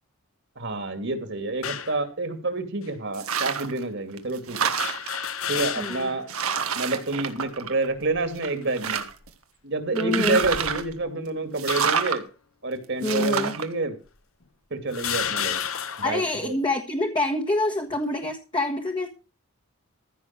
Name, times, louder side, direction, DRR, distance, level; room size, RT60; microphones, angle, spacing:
voice 1, 0.6-4.7 5.5-6.3 6.7-9.1 9.6-12.2 12.6-14.0 14.7-15.6 16.0-16.5, right 2 dB, 55° right, 8 dB, 2.5 m, -28 dB
sound 1, 1.6-2.0 2.8-2.9 4.8-6.2 6.7-6.8 7.9-8.4 9.0-9.3 10.2-11.1 11.7-12.2 13.1-13.2 14.1-14.2 14.9-16.2, left 8 dB, 75° left, 1.3 m, -32 dB
sound 2, 3.1-3.8 4.2-5.3 5.9-6.0 6.3-8.0 8.4-9.3 10.0-10.9 11.6-12.2 13.0-13.6, right 7 dB, 80° right, 1.5 m, -28 dB
voice 2, 5.8-6.1 9.9-10.4 13.0-13.6 16.0-19.1, left 1 dB, 20° left, 2 dB, 1.5 m, -26 dB
15.0 x 6.4 x 6.0 m, 0.33 s
head